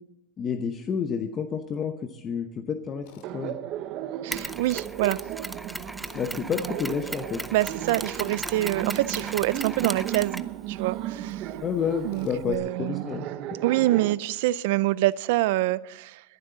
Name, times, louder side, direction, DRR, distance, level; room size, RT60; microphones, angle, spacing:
voice 1, 0.4-3.1 3.3-3.6 6.1-7.4 11.6-13.3, left 7 dB, 30° left, 0.9 m, -30 dB
Tools, 3.0-3.3 6.0-6.4 9.1-9.4 12.1-12.4, left 6 dB, 75° left, 2.6 m, -50 dB
Laughter, 3.2-14.1, right 13 dB, 50° right, 0.8 m, -35 dB
voice 2, 4.2-5.2 7.5-10.4 10.7-11.5 12.0-13.0 13.6-16.2, right 17 dB, 75° right, 0.5 m, -26 dB
Mechanisms, 4.3-12.5, right 1 dB, 5° right, 0.5 m, -38 dB
21.0 x 11.0 x 4.0 m
supercardioid pair, 130°, 0 cm